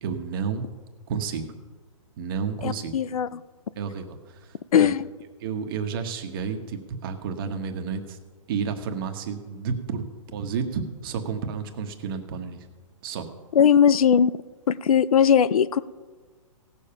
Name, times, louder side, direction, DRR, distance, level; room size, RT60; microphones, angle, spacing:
voice 1, 0.0-0.7 1.1-1.4 2.2-2.9 3.7-4.9 5.4-8.2 8.5-10.1 10.3-12.6 13.0-13.3, right 6 dB, 40° right, 6 dB, 1.3 m, -31 dB
voice 2, 2.6-3.4 4.7-5.1 13.5-14.3 14.7-15.8, left 8 dB, 85° left, 18 dB, 0.5 m, -19 dB
17.0 x 7.0 x 5.7 m, 1.4 s
hypercardioid pair, 160°, 18 cm